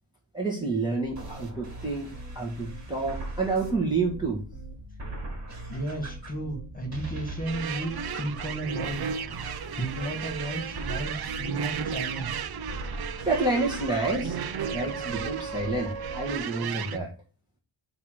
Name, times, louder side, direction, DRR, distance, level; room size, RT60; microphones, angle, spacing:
voice 1, 0.3-4.4 13.2-14.4 14.7-17.1, right 3 dB, 10° right, -4 dB, 1.4 m, -29 dB
sound 1, 1.0-16.4, right 2 dB, 35° right, 2.7 m, -39 dB
voice 2, 5.7-12.3, right 1 dB, 15° left, 1 dB, 1.9 m, -34 dB
sound 2, 7.5-17.0, right 8 dB, 50° right, 0.6 m, -35 dB
8.8 x 2.9 x 6.3 m, 0.36 s
wide cardioid pair, 180°, 48 cm